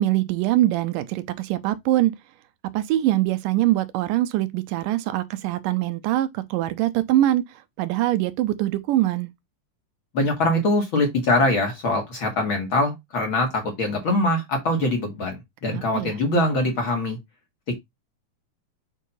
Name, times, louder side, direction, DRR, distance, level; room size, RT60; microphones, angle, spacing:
voice 1, 0.0-2.1 2.7-7.4 7.8-9.3 15.7-16.1, right 14 dB, 85° right, 2.3 m, -23 dB
voice 2, 10.1-17.2 17.7-17.8, left 1 dB, 45° left, 1.9 m, -23 dB
7.2 x 2.8 x 5.4 m
omnidirectional pair, 3.8 m